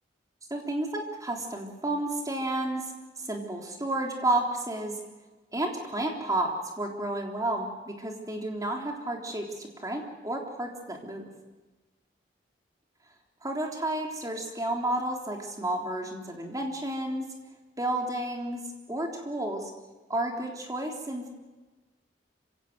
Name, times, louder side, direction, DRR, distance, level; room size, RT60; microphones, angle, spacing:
voice 1, 0.5-2.9 3.2-5.0 5.5-6.5 6.8-11.3 13.4-17.2 17.8-19.7 20.1-21.4, right 1 dB, 20° right, 1 dB, 3.6 m, -31 dB
26.0 x 17.0 x 8.0 m, 1.2 s
head